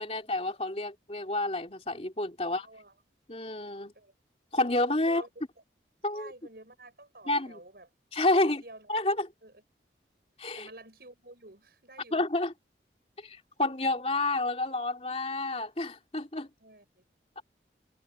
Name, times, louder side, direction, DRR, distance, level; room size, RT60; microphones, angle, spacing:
voice 1, 0.0-2.7 3.3-3.9 4.5-5.2 6.0-6.3 7.3-7.6 8.1-8.6 8.9-9.3 10.4-10.7 12.1-12.5 13.2-16.5, left 2 dB, 35° left, 3.0 m, -29 dB
voice 2, 2.4-2.9 3.9-4.1 5.0-5.3 6.1-7.9 8.6-8.9 9.4-9.6 10.6-12.2 16.6-17.0, right 2 dB, 60° right, 6.0 m, -50 dB
head